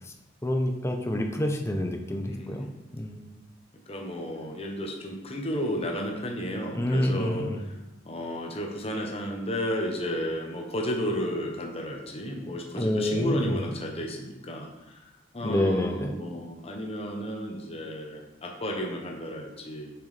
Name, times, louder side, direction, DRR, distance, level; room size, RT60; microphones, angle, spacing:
voice 1, 0.4-2.7 2.9-3.4 6.7-7.7 12.7-13.6 15.4-16.2, left 1 dB, 15° left, 4 dB, 0.6 m, -28 dB
voice 2, 2.3-2.7 3.9-7.4 8.0-19.9, equal, 30° left, 1 dB, 0.9 m, -33 dB
7.1 x 5.9 x 3.3 m, 1.0 s
head